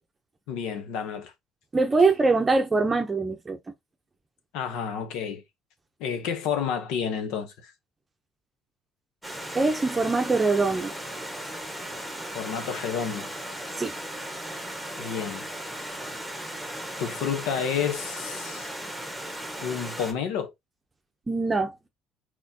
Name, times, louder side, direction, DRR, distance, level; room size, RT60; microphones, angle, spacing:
voice 1, 0.5-1.3 4.5-5.4 6.0-7.7 12.3-13.3 15.0-15.5 17.0-18.7 19.6-20.5, left 7 dB, 85° left, 1.0 m, -30 dB
voice 2, 1.7-3.6 9.5-10.9 13.8-13.9 21.3-21.7, right 3 dB, 20° right, 0.7 m, -23 dB
Stream, 9.2-20.1, right 1 dB, 5° left, 1.4 m, -36 dB
4.4 x 4.3 x 2.8 m
cardioid pair, 125°, 0 cm